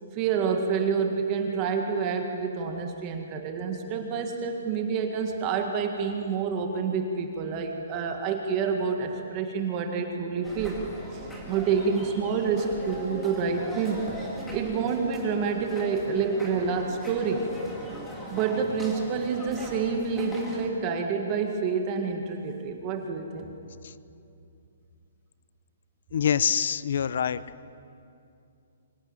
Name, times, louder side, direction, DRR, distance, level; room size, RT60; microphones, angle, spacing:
voice 1, 0.1-10.8 11.1-14.0 14.5-17.4 18.3-23.5, right 5 dB, 20° right, 3 dB, 1.8 m, -28 dB
sound 1, 10.4-20.7, equal, 5° left, 2.6 m, -40 dB
voice 2, 26.1-27.4, left 8 dB, 55° left, 17 dB, 0.7 m, -25 dB
24.5 x 18.0 x 9.1 m, 2.6 s
hypercardioid pair, 170°, 0 cm